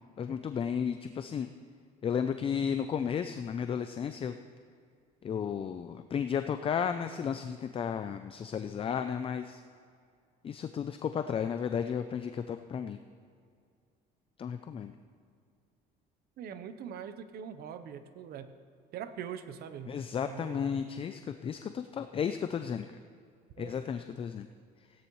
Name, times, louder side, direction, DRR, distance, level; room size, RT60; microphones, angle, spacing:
voice 1, 0.2-1.5 2.0-4.3 5.2-9.6 10.4-13.0 14.4-14.9 19.9-22.9 23.6-24.5, left 7 dB, 35° left, 9 dB, 0.4 m, -33 dB
voice 2, 16.4-18.5 18.9-20.0 20.3-20.8 23.6-23.7, right 8 dB, 65° right, 10 dB, 0.8 m, -42 dB
16.5 x 10.0 x 3.1 m, 2.2 s
cardioid pair, 110°, 17 cm